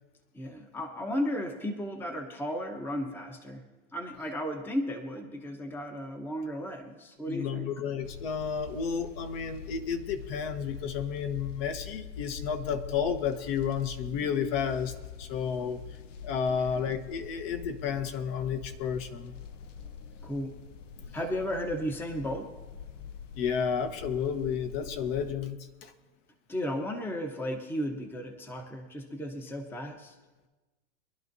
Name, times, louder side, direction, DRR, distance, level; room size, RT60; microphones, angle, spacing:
voice 1, 0.3-3.6 3.9-7.7 16.5-16.8 20.2-20.6 21.1-22.5 26.5-30.1, equal, 5° left, 5 dB, 0.8 m, -34 dB
voice 2, 7.2-15.8 16.2-19.3 21.0-21.1 23.3-25.9, left 7 dB, 50° left, 8 dB, 1.1 m, -32 dB
sound 1, 8.0-25.3, left 6 dB, 85° left, 1.0 m, -44 dB
23.5 x 11.0 x 2.7 m, 1.2 s
supercardioid pair, 140°, 36 cm